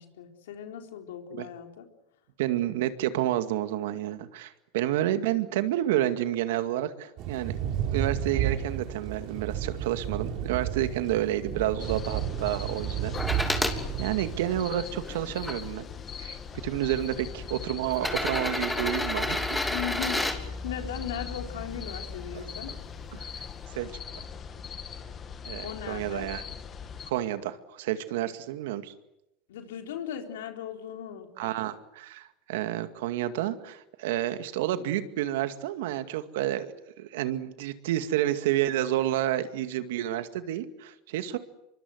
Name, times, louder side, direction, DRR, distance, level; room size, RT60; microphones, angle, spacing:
voice 1, 0.0-1.9 16.9-17.1 19.7-22.8 25.6-26.3 29.5-31.5, left 9 dB, 85° left, 4 dB, 4.0 m, -38 dB
voice 2, 2.4-7.6 7.9-13.2 13.4-15.9 16.2-19.6 22.3-22.5 23.2-23.3 23.7-23.9 25.5-26.4 27.1-28.9 31.4-41.4, right 13 dB, 75° right, 10 dB, 2.1 m, -30 dB
Thunder / Rain, 7.2-14.6, right 9 dB, 50° right, 4.9 m, -32 dB
sound 1, 11.8-27.1, left 6 dB, 30° left, 2.2 m, -40 dB
sound 2, 13.2-13.8 14.5-15.5 16.5-16.6 17.9-20.4 22.3-22.4, left 1 dB, 5° left, 3.2 m, -30 dB
25.0 x 23.5 x 8.0 m, 0.87 s
supercardioid pair, 120°, 0 cm